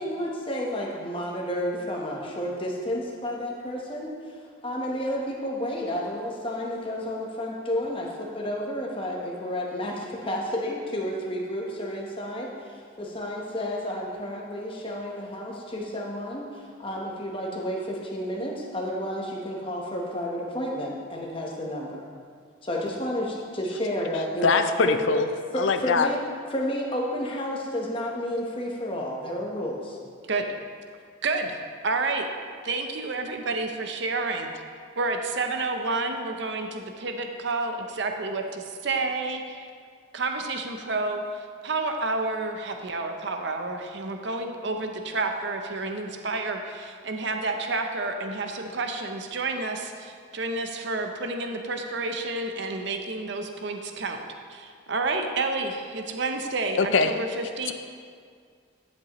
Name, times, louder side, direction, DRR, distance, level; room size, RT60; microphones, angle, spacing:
voice 1, 0.0-4.3 4.6-22.1 22.6-24.6 24.8-25.0 25.5-26.2 26.5-30.0, equal, 25° left, -2 dB, 1.0 m, -31 dB
voice 2, 24.4-25.3 25.6-26.1 56.8-57.1, left 4 dB, 65° left, 9 dB, 0.5 m, -22 dB
voice 3, 31.2-31.6 31.8-32.3 32.6-34.5 35.0-39.7 40.1-54.2 54.5-57.7, right 3 dB, 55° right, 5 dB, 0.6 m, -30 dB
10.5 x 7.5 x 3.0 m, 2.1 s
head